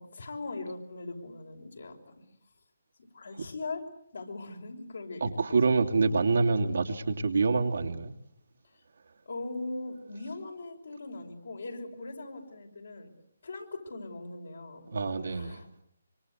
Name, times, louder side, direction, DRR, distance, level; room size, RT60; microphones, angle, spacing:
voice 1, 0.0-2.2 3.1-3.8 4.1-6.0 9.3-13.1 13.4-14.9 15.3-15.7, left 2 dB, 70° left, 5.9 m, -40 dB
voice 2, 5.2-8.1 14.9-15.6, right 4 dB, 70° right, 2.8 m, -26 dB
26.0 x 25.0 x 8.2 m
figure-of-eight pair, 150°, 0 cm